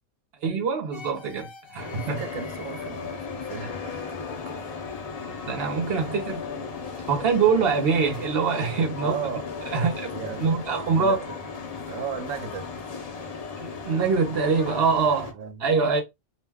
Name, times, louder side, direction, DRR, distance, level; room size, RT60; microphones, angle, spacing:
voice 1, 0.4-2.2 5.5-6.4 7.1-9.2 9.7-10.1 10.4-11.2 13.6-15.4 15.6-16.0, right 5 dB, 55° right, 0.8 m, -24 dB
sound 1, 0.9-10.3, left 6 dB, 55° left, 0.7 m, -43 dB
sound 2, 1.8-15.3, left 5 dB, 85° left, 0.3 m, -36 dB
voice 2, 2.0-4.8 9.0-10.5 10.9-11.4 11.9-12.7 15.3-15.7, right 7 dB, 75° right, 1.1 m, -36 dB
2.5 x 2.1 x 3.3 m
omnidirectional pair, 1.4 m